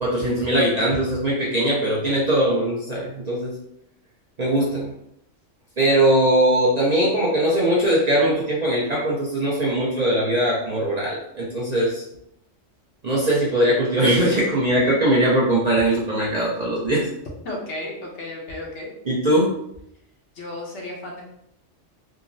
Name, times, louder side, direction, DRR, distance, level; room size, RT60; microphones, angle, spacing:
voice 1, 0.0-3.5 4.4-4.9 5.8-12.0 13.0-17.1 19.1-19.5, right 1 dB, 45° right, -6 dB, 0.5 m, -20 dB
voice 2, 17.4-18.9 20.3-21.3, left 1 dB, 70° left, -2 dB, 1.1 m, -33 dB
3.6 x 2.0 x 2.6 m, 0.76 s
omnidirectional pair, 1.3 m